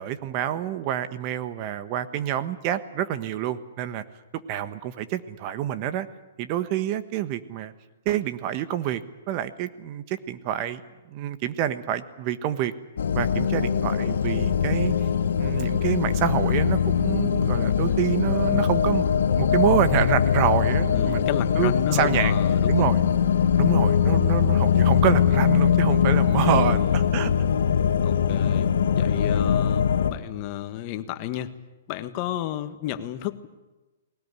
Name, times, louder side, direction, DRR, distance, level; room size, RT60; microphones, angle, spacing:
voice 1, 0.0-4.0 4.3-6.1 6.4-7.7 8.0-10.8 11.1-12.7 13.1-14.9 15.4-19.1 19.3-22.4 22.7-23.0 23.6-27.3, right 11 dB, 35° right, 12 dB, 1.4 m, -27 dB
sound 1, 13.0-30.1, left 8 dB, 80° left, 1.8 m, -22 dB
voice 2, 20.9-22.9 26.3-27.2 28.0-31.5 31.9-33.5, left 13 dB, 35° left, 10 dB, 1.6 m, -32 dB
20.5 x 18.5 x 9.9 m, 1.1 s
hypercardioid pair, 145°, 0 cm